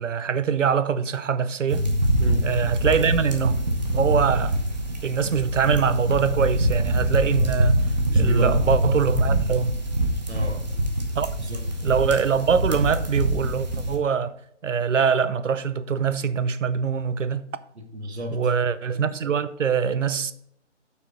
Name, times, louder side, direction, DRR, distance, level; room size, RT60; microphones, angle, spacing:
voice 1, 0.0-1.9 2.4-3.5 3.9-4.6 5.0-7.8 8.1-9.8 11.2-11.3 11.8-14.3 14.6-17.5 18.3-20.3, right 6 dB, 85° right, 0.7 m, -23 dB
sound 1, 1.7-13.9, right 1 dB, 35° right, 1.0 m, -24 dB
voice 2, 2.2-2.6 8.1-8.6 10.3-10.6 11.4-11.9 17.7-18.5, equal, 60° right, 1.6 m, -32 dB
7.7 x 5.9 x 3.8 m
hypercardioid pair, 175°, 36 cm